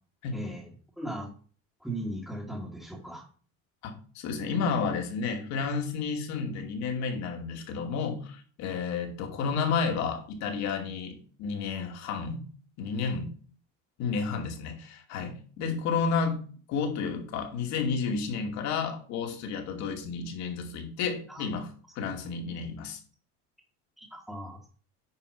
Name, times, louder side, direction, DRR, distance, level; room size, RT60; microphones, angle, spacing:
voice 1, 0.3-0.7 1.0-1.3 1.8-3.2 21.3-21.5 24.0-24.6, right 1 dB, ahead, 1.7 m, -37 dB
voice 2, 3.8-12.4 12.8-13.3 14.0-16.4 16.7-21.7 22.0-23.0, left 5 dB, 60° left, 2.6 m, -31 dB
9.8 x 5.2 x 5.3 m
cardioid pair, 135°, 32 cm